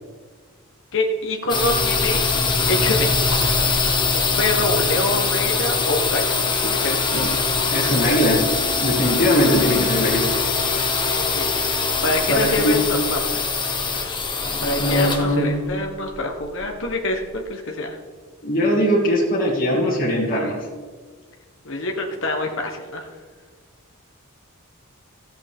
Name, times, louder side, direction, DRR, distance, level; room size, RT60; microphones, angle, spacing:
voice 1, 0.9-2.3 2.7-3.4 4.1-7.0 11.3-11.5 12.0-13.4 14.6-18.0 21.6-23.1, left 2 dB, 65° left, 2 dB, 1.2 m, -25 dB
sound 1, 1.5-17.1, left 4 dB, 20° left, 1.2 m, -22 dB
voice 2, 7.7-8.5 8.8-10.3 12.3-12.8 14.8-15.6 18.4-20.7, equal, 40° left, -7 dB, 2.3 m, -20 dB
14.5 x 8.0 x 3.6 m, 1.5 s
head